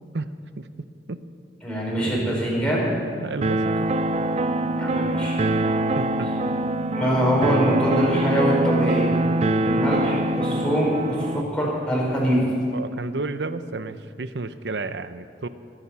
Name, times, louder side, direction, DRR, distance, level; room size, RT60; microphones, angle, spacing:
voice 1, 0.1-0.7 1.1-1.2 3.2-3.7 6.0-6.3 12.7-15.5, right 3 dB, 80° right, 12 dB, 0.7 m, -31 dB
voice 2, 1.6-2.9 4.8-5.4 6.9-9.2 9.6-12.4, equal, 5° left, -5 dB, 4.9 m, -23 dB
sound 1, 3.4-11.4, right 2 dB, 35° right, 0.5 m, -24 dB
21.5 x 10.5 x 5.6 m, 2.5 s
head